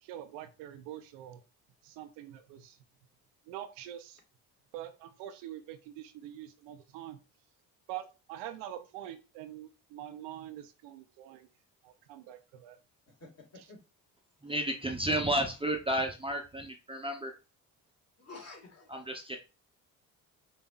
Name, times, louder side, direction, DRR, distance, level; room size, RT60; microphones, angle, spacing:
voice 1, 0.0-1.4 1.8-2.8 3.5-4.2 4.7-7.2 7.9-11.5 11.8-12.8, right 12 dB, 85° right, 9 dB, 0.6 m, -45 dB
voice 2, 13.2-13.8 14.4-14.5 18.2-19.1, left 3 dB, 35° left, 2 dB, 1.8 m, -50 dB
voice 3, 14.4-17.3 18.9-19.4, right 1 dB, 15° right, 3 dB, 0.7 m, -32 dB
5.5 x 2.7 x 2.4 m, 0.32 s
supercardioid pair, 55°, 42 cm